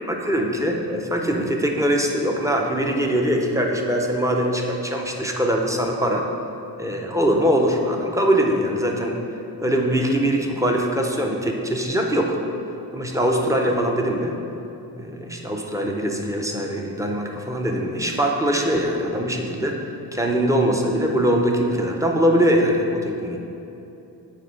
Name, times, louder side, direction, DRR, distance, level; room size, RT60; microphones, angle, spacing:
voice 1, 0.1-6.2 6.8-9.2 9.6-12.3 12.9-14.3 15.0-19.8 20.1-23.4, equal, 10° right, 1 dB, 0.7 m, -22 dB
6.6 x 4.3 x 5.2 m, 2.9 s
wide cardioid pair, 70°, 40 cm